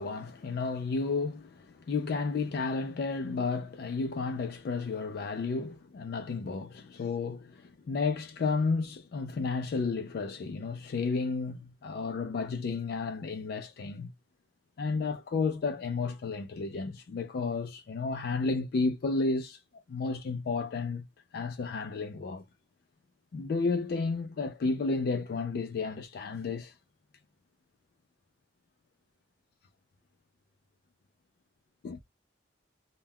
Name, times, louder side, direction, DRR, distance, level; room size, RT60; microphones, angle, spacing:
voice 1, 0.0-14.1 14.8-19.6 19.9-21.0 21.3-22.4 23.3-26.7 31.8-32.0, left 4 dB, 55° left, 0.3 m, -32 dB
2.1 x 2.1 x 3.4 m
head